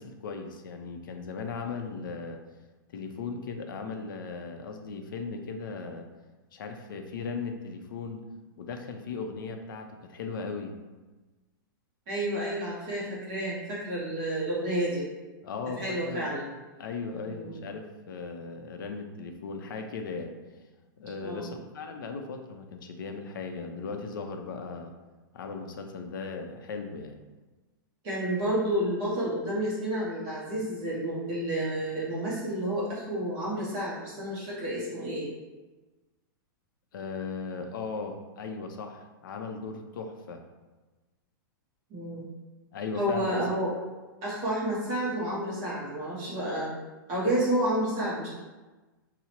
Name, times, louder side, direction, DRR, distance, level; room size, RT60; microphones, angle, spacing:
voice 1, 0.0-2.4 2.9-6.1 6.5-8.2 8.6-10.7 15.4-16.3 16.8-20.3 21.0-24.9 25.3-27.2 36.9-40.4 42.7-43.6, left 4 dB, 65° left, 5 dB, 0.5 m, -37 dB
voice 2, 12.1-15.1 15.8-16.5 17.3-17.5 21.2-21.5 28.0-35.3 41.9-42.3 43.0-43.7 44.2-46.7 47.1-48.3, right 1 dB, 25° right, -7 dB, 0.7 m, -30 dB
5.7 x 2.0 x 2.8 m, 1.2 s
supercardioid pair, 175°, 12 cm